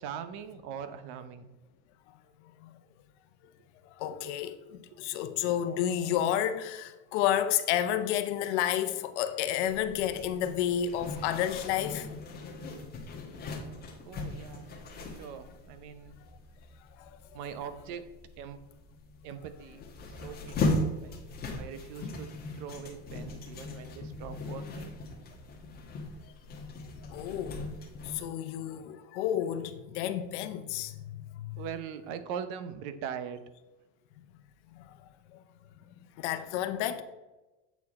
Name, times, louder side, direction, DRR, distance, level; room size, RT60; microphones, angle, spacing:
voice 1, 0.0-1.5 14.0-14.7 15.0-16.2 17.3-18.1 18.4-18.6 19.2-19.8 20.2-21.2 21.6-22.3 22.5-25.0 31.6-33.5, right 8 dB, 55° right, 0.8 m, -41 dB
voice 2, 4.0-12.1 17.0-17.1 27.1-27.7 28.0-31.6 34.7-35.0 35.3-35.4 36.2-37.0, left 10 dB, 70° left, 0.8 m, -31 dB
Zipper (clothing), 9.7-28.2, left 2 dB, 25° left, 1.3 m, -38 dB
8.2 x 4.6 x 4.2 m
supercardioid pair, 150°, 35 cm